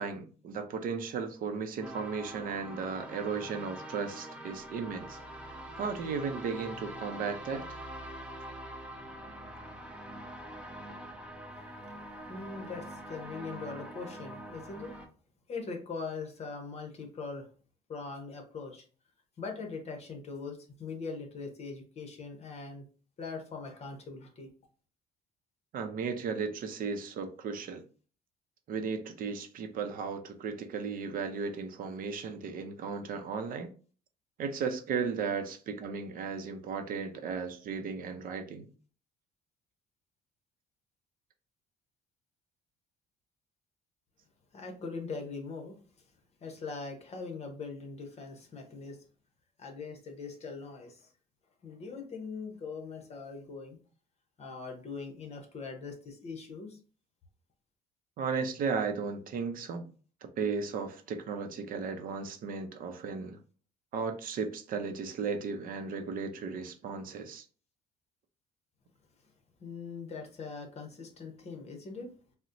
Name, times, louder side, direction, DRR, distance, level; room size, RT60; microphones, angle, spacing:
voice 1, 0.0-5.2 5.8-7.9 25.7-27.8 28.7-33.7 34.4-38.7 58.2-59.8 60.4-63.4 63.9-67.5, right 5 dB, 55° right, 0.5 m, -35 dB
sound 1, 1.8-15.1, right 1 dB, 5° right, 0.6 m, -44 dB
voice 2, 12.3-14.9 15.5-17.4 17.9-18.8 19.4-22.8 23.2-24.5 44.5-45.8 46.4-49.0 49.6-51.0 51.6-53.8 54.4-56.8 69.6-72.1, left 4 dB, 40° left, 0.8 m, -41 dB
4.0 x 2.1 x 2.5 m
cardioid pair, 110°, 17 cm